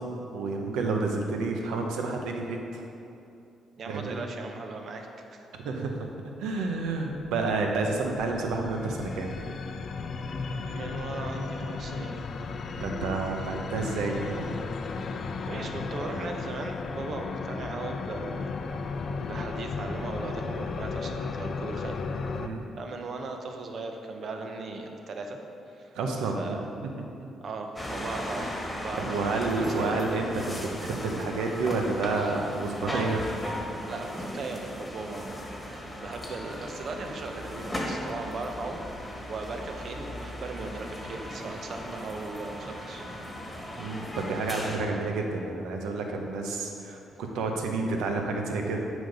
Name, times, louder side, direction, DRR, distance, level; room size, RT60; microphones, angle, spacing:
voice 1, 0.0-2.8 3.9-4.2 5.6-6.1 6.4-9.3 12.8-14.5 22.4-22.7 25.9-26.6 27.2-27.4 29.0-33.2 43.8-48.8, right 3 dB, 90° right, 2 dB, 0.9 m, -30 dB
voice 2, 3.8-5.5 10.7-12.1 15.5-18.5 19.2-22.0 22.8-25.4 25.7-25.9 26.4-26.7 27.4-28.5 28.8-30.0 32.8-33.1 33.9-43.0, right 3 dB, 55° right, 4 dB, 0.8 m, -38 dB
sound 1, 6.5-22.5, left 4 dB, 50° left, 0.5 m, -35 dB
sound 2, 27.8-44.8, left 1 dB, 10° left, 1.6 m, -37 dB
7.8 x 5.1 x 5.4 m, 2.7 s
cardioid pair, 90°, 0 cm